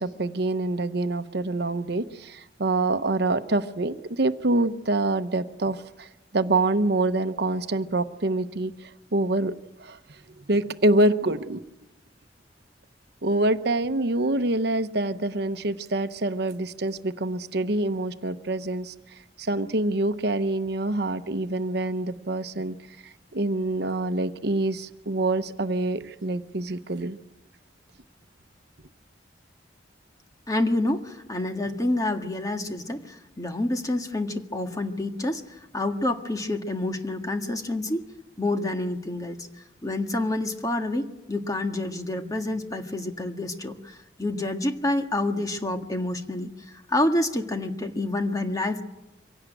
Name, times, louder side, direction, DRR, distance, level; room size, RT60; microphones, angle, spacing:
voice 1, 0.0-6.1 6.3-9.5 9.8-10.0 10.4-11.6 13.2-18.9 19.4-22.8 23.3-27.2, right 2 dB, 65° right, 10 dB, 0.9 m, -26 dB
voice 2, 30.5-35.4 35.7-38.1 38.4-39.5 39.8-46.5 46.9-48.8, left 1 dB, 20° left, 5 dB, 1.7 m, -28 dB
24.5 x 17.5 x 9.1 m, 0.98 s
head